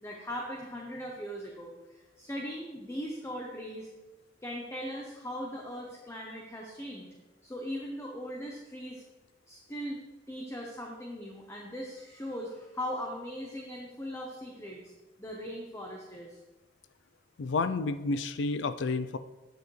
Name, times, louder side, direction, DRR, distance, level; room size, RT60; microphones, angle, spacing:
voice 1, 0.0-3.9 4.4-7.1 7.4-9.0 9.5-10.0 10.3-14.9 15.2-16.4, equal, 15° left, 0 dB, 0.8 m, -39 dB
voice 2, 17.4-19.2, left 3 dB, 70° left, 12 dB, 0.4 m, -30 dB
9.1 x 7.8 x 3.2 m, 1.1 s
head